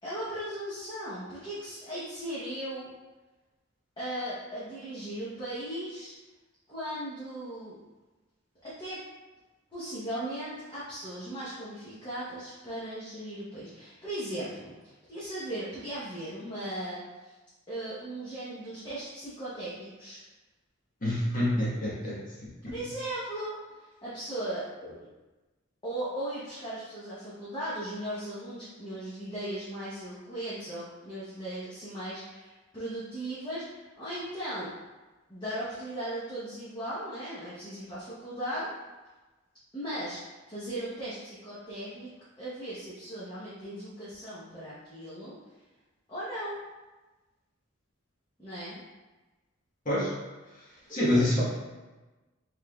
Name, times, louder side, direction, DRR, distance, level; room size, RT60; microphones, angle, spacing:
voice 1, 0.0-2.9 4.0-6.1 6.7-7.8 8.6-9.0 9.7-17.4 17.7-20.2 22.7-23.6 24.0-24.7 25.8-34.7 35.3-38.7 39.7-42.1 42.4-45.4 46.1-46.6 48.4-48.8 50.9-51.2, right 1 dB, 25° left, -10 dB, 0.9 m, -37 dB
voice 2, 21.0-22.2 49.9-50.1 50.9-51.4, left 1 dB, 45° left, -7 dB, 1.1 m, -26 dB
5.6 x 3.3 x 2.3 m, 1.2 s
head